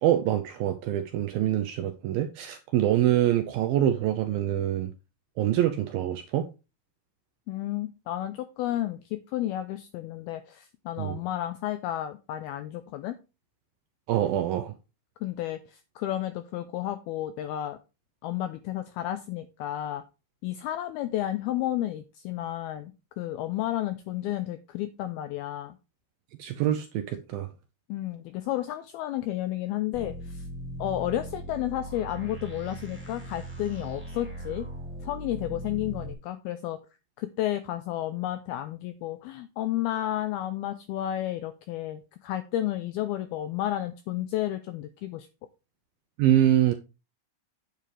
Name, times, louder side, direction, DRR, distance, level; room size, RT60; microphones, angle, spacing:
voice 1, 0.0-4.9 5.4-6.5 11.0-11.2 14.1-14.7 26.4-27.5 46.2-46.7, right 12 dB, 85° right, 2.1 m, -25 dB
voice 2, 7.5-13.2 15.2-17.8 18.2-20.0 20.4-25.8 27.9-30.5 30.8-34.7 35.0-36.8 37.2-45.3, left 13 dB, 90° left, 2.2 m, -32 dB
sound 1, 29.9-36.1, right 1 dB, 5° right, 1.8 m, -39 dB
9.4 x 8.8 x 3.3 m
omnidirectional pair, 5.2 m